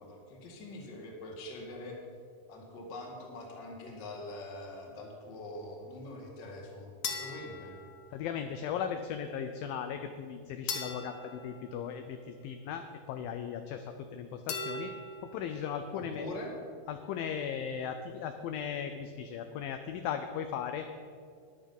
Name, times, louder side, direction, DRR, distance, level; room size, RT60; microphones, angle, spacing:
voice 1, 0.0-2.0 2.5-7.8 15.9-16.5, left 2 dB, 40° left, 0 dB, 1.7 m, -44 dB
sound 1, 7.0-8.5 10.7-12.5 14.5-15.6, left 4 dB, 65° left, 2.5 m, -40 dB
voice 2, 8.1-14.9 15.2-16.3 16.9-20.9, left 8 dB, 80° left, 7 dB, 2.1 m, -37 dB
14.0 x 9.8 x 5.4 m, 2.2 s
omnidirectional pair, 4.7 m